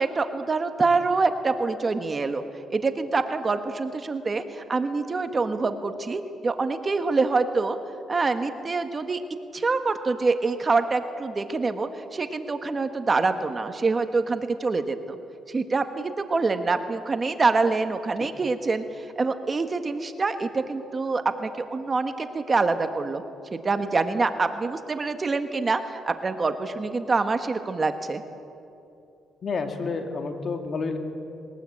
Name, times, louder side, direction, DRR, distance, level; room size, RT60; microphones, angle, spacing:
voice 1, 0.0-2.4 2.7-7.8 8.1-9.2 9.5-15.2 15.5-23.2 23.5-28.2, right 3 dB, 30° right, 8 dB, 1.5 m, -25 dB
voice 2, 29.4-31.0, left 4 dB, 50° left, 5 dB, 2.4 m, -29 dB
21.5 x 19.5 x 8.7 m, 2.7 s
cardioid pair, 90°, 0 cm